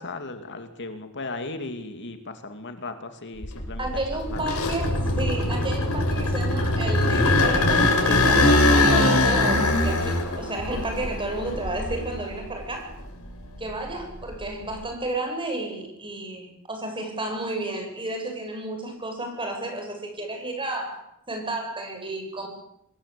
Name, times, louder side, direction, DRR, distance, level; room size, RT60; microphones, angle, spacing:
voice 1, 0.0-3.9 4.3-4.4, left 3 dB, 55° left, 7 dB, 2.6 m, -36 dB
sound 1, 3.4-12.5 12.9-14.8, left 2 dB, 75° left, 6.6 m, -22 dB
voice 2, 3.8-12.9 13.6-21.0 21.3-22.5, right 2 dB, 25° right, 4 dB, 7.8 m, -32 dB
26.5 x 20.5 x 8.6 m, 0.80 s
head